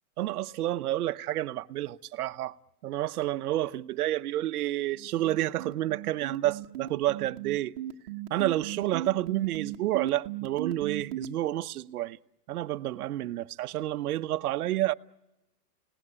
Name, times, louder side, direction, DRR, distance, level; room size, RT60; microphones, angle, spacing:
voice 1, 0.2-2.5 2.8-7.7 8.3-12.2 12.5-14.9, right 14 dB, 70° right, 0.9 m, -29 dB
sound 1, 4.9-11.3, right 13 dB, 40° right, 1.4 m, -36 dB
30.0 x 18.5 x 8.7 m
supercardioid pair, 180°, 47 cm